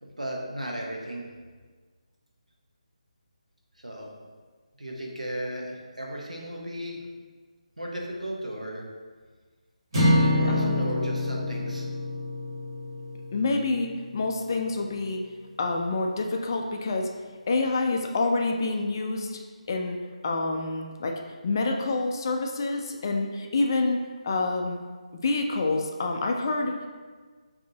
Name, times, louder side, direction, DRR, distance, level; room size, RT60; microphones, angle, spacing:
voice 1, 0.0-1.2 3.8-4.1 4.8-7.0 7.8-8.8 10.4-11.9, right 1 dB, 75° right, 0 dB, 0.8 m, -35 dB
sound 1, 9.9-14.3, left 1 dB, 40° right, 1.2 m, -26 dB
voice 2, 10.5-10.8 13.3-15.2 15.6-17.1 17.5-19.4 19.7-20.0 20.2-24.8 25.2-26.9, left 3 dB, 35° left, 3 dB, 0.3 m, -27 dB
5.1 x 2.7 x 2.7 m, 1.5 s
figure-of-eight pair, 150°, 4 cm